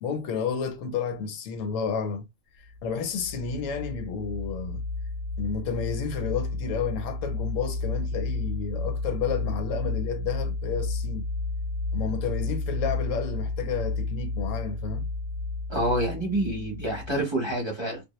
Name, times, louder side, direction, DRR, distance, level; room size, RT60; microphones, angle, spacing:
voice 1, 0.0-2.2 2.8-4.8 5.4-11.3 11.9-15.1, left 6 dB, 80° left, 1.0 m, -31 dB
sound 1, 2.7-17.2, left 3 dB, 55° left, 0.5 m, -32 dB
voice 2, 15.7-18.0, right 1 dB, 25° right, 0.8 m, -27 dB
2.2 x 2.0 x 2.9 m
omnidirectional pair, 1.3 m